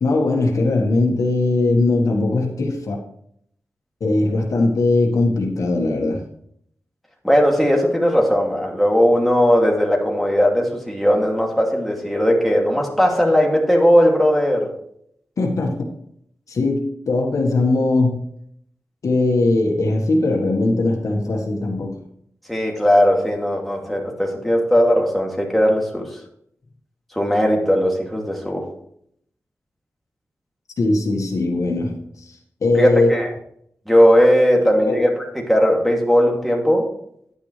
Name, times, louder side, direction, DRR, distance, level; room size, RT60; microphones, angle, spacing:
voice 1, 0.0-3.0 4.0-6.2 15.4-15.9 16.5-18.2 19.0-21.9 30.8-32.3 32.6-33.1 34.9-35.1, left 2 dB, 80° left, 1 dB, 1.6 m, -20 dB
voice 2, 7.2-14.7 22.5-26.1 27.1-28.7 32.7-33.3 33.9-35.1 35.3-36.9, equal, ahead, -1 dB, 2.6 m, -17 dB
10.0 x 9.5 x 3.3 m, 0.69 s
wide cardioid pair, 90°, 5 cm